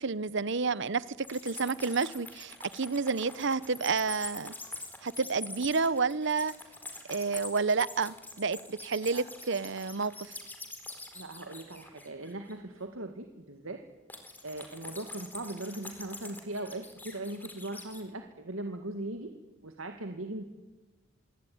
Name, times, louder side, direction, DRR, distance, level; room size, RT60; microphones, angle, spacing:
voice 1, 0.0-4.5 5.0-6.5 7.1-10.4, right 4 dB, 60° right, 19 dB, 0.9 m, -30 dB
sound 1, 1.2-12.5 14.1-18.0, left 2 dB, 10° left, 4.4 m, -45 dB
voice 2, 11.1-13.8 14.4-19.3 19.6-20.5, right 2 dB, 75° right, 5 dB, 2.2 m, -39 dB
27.0 x 23.0 x 9.5 m, 1.2 s
head